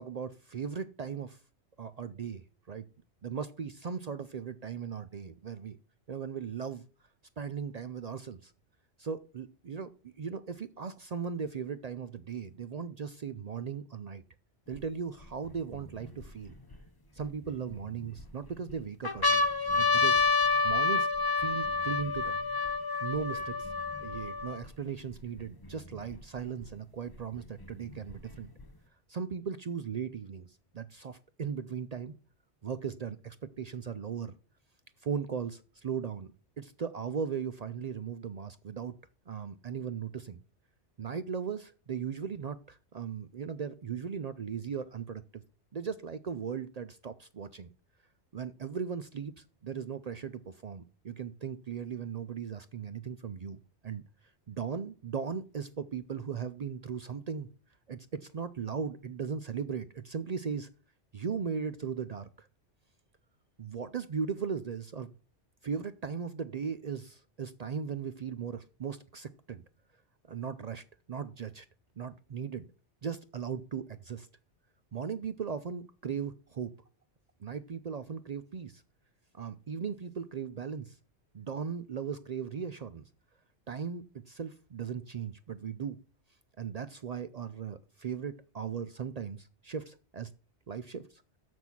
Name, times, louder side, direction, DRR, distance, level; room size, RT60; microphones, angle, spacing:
voice 1, 0.0-1.4 1.8-2.8 3.2-5.8 6.1-6.8 7.4-8.5 9.0-14.2 14.7-16.5 17.1-19.4 19.7-20.1 20.6-21.1 21.4-22.4 23.0-23.7 24.0-28.5 29.1-32.2 32.6-34.3 35.0-36.3 36.6-38.9 39.3-40.4 41.0-45.4 45.7-47.7 48.3-53.6 53.8-54.0 54.5-57.5 57.9-60.7 61.1-62.5 63.6-65.1 65.6-69.6 70.3-71.7 72.0-72.7 73.0-74.3 74.9-76.7 77.4-78.8 79.3-81.0 81.3-83.0 83.7-86.0 86.6-90.3 90.7-91.2, right 6 dB, 55° right, 13 dB, 0.4 m, -38 dB
sound 1, 14.7-14.8 15.5-16.8 17.5-18.2 18.7-18.8 19.0-24.7 25.4-25.5 25.6-26.7 27.6-28.6, left 4 dB, 20° left, 0.7 m, -29 dB
7.2 x 6.2 x 5.9 m, 0.36 s
omnidirectional pair, 1.2 m